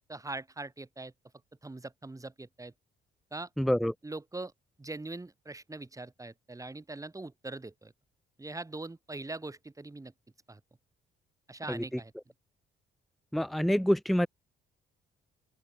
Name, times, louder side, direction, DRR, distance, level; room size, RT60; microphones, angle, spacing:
voice 1, 0.1-1.1 1.6-2.7 3.3-3.5 4.0-4.5 4.8-7.9 8.4-10.1 10.5-10.6 11.5-12.1, right 2 dB, 15° right, 3.3 m, -42 dB
voice 2, 3.6-3.9 11.7-11.8 13.3-14.3, equal, ahead, 0.4 m, -26 dB
open air
cardioid pair, 90°, 20 cm